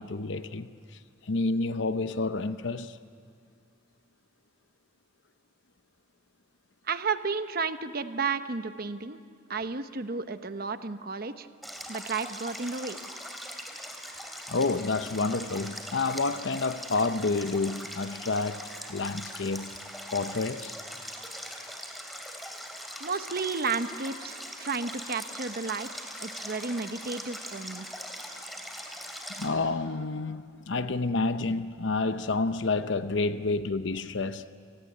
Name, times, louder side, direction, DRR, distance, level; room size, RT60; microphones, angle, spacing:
voice 1, 0.0-3.0 14.5-18.6 18.9-19.8 20.1-20.7 29.3-34.5, left 3 dB, 65° left, 0.7 m, -29 dB
voice 2, 6.9-9.2 9.5-11.5 11.9-13.0 23.0-25.9 26.2-27.9, right 4 dB, 50° right, 1.0 m, -32 dB
Stream, 11.6-29.5, equal, ahead, 2.7 m, -41 dB
30.0 x 18.0 x 9.5 m
head